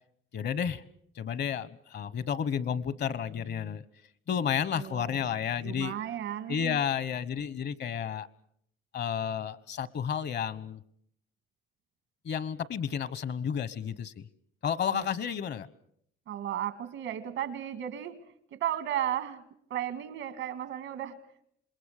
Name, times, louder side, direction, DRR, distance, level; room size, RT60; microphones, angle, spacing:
voice 1, 0.3-0.8 1.2-3.8 4.3-6.0 6.5-8.3 8.9-10.8 12.2-14.3 14.6-15.7, left 8 dB, 60° left, 18 dB, 1.2 m, -31 dB
voice 2, 4.7-5.3 5.6-6.8 14.9-15.1 16.3-18.2 18.5-19.4 19.7-21.2, right 10 dB, 85° right, 12 dB, 2.0 m, -34 dB
27.5 x 21.0 x 6.7 m, 0.69 s
cardioid pair, 90°, 20 cm